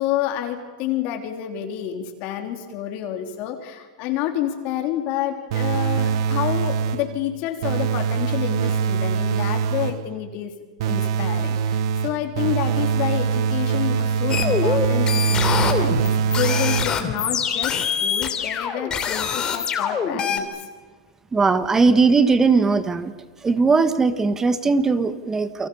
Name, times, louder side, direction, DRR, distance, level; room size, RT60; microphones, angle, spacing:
voice 1, 0.0-10.5 10.8-20.6, left 11 dB, 45° left, 4 dB, 3.4 m, -29 dB
sound 1, 5.5-7.2 7.6-10.1 10.8-17.2, right 6 dB, 65° right, 1.0 m, -23 dB
sound 2, 14.3-20.4, left 7 dB, 25° left, 3.2 m, -24 dB
voice 2, 21.3-23.1 23.4-25.7, right 4 dB, 15° right, 12 dB, 1.4 m, -19 dB
29.0 x 24.5 x 7.1 m, 1.4 s
hypercardioid pair, 130°, 3 cm